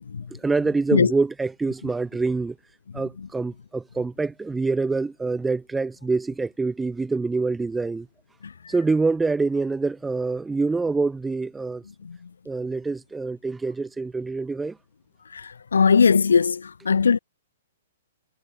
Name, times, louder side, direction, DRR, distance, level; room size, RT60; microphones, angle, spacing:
voice 1, 0.3-2.6 2.9-8.1 8.7-11.8 12.5-14.8, right 3 dB, 10° right, 6.0 m, -25 dB
voice 2, 15.7-16.6 16.9-17.2, left 5 dB, 85° left, 1.8 m, -17 dB
hypercardioid pair, 130°, 0 cm